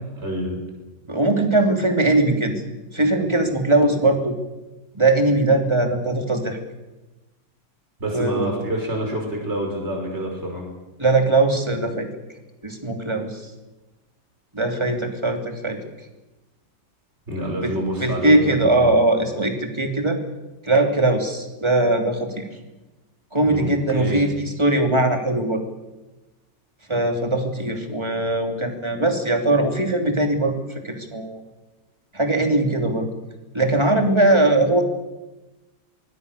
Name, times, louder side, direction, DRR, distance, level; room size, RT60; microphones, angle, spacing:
voice 1, 0.2-0.6 8.0-10.7 17.3-18.9 23.5-24.2, equal, 35° right, 1 dB, 6.0 m, -27 dB
voice 2, 1.1-2.5 2.9-4.4 4.9-6.6 8.1-8.5 11.0-12.1 12.6-13.5 14.5-15.8 17.6-17.7 18.0-20.2 20.6-22.4 23.3-25.6 26.9-30.5 30.8-31.4 32.1-33.1 33.5-34.8, right 2 dB, 15° right, 4 dB, 3.0 m, -20 dB
24.5 x 20.0 x 6.9 m, 1.1 s
omnidirectional pair, 1.9 m